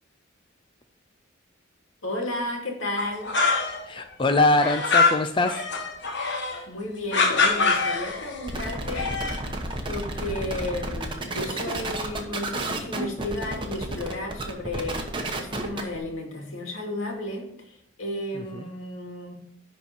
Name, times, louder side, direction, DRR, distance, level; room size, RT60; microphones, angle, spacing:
voice 1, 2.0-3.3 6.7-9.1 9.8-15.0 15.3-19.3, left 1 dB, 80° left, 1 dB, 2.4 m, -33 dB
sound 1, 3.0-4.0 4.3-6.6 7.1-8.4 8.8-9.5, left 4 dB, 55° left, 1.4 m, -24 dB
voice 2, 3.9-5.6 18.3-18.7, left 2 dB, 25° left, 8 dB, 0.4 m, -23 dB
sound 2, 8.5-16.0, right 2 dB, 25° right, 1.0 m, -31 dB
10.5 x 4.2 x 5.9 m, 0.73 s
head